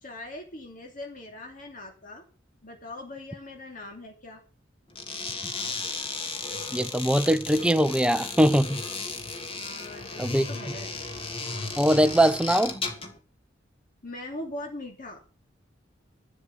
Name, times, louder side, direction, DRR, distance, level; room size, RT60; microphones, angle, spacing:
voice 1, 0.0-2.2 2.6-4.4 9.6-10.9 14.0-15.2, left 1 dB, 45° left, 2.9 m, -41 dB
sound 1, 4.9-13.2, left 3 dB, 30° left, 2.8 m, -35 dB
voice 2, 6.7-8.8 10.2-10.5 11.8-12.8, equal, 5° right, 0.8 m, -22 dB
12.5 x 8.5 x 6.8 m
head